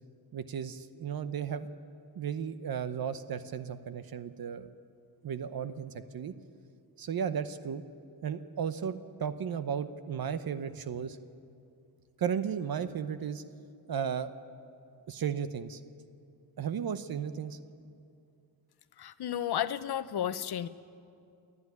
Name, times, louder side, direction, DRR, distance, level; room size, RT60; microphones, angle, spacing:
voice 1, 0.3-1.7 2.1-4.7 5.2-6.3 7.0-7.8 8.2-11.2 12.2-13.4 13.9-14.3 15.1-15.8 16.6-17.6, right 7 dB, 60° right, 11 dB, 0.9 m, -34 dB
voice 2, 19.0-20.7, left 10 dB, 65° left, 13 dB, 0.8 m, -32 dB
28.5 x 11.0 x 9.5 m, 2.5 s
cardioid pair, 110°, 41 cm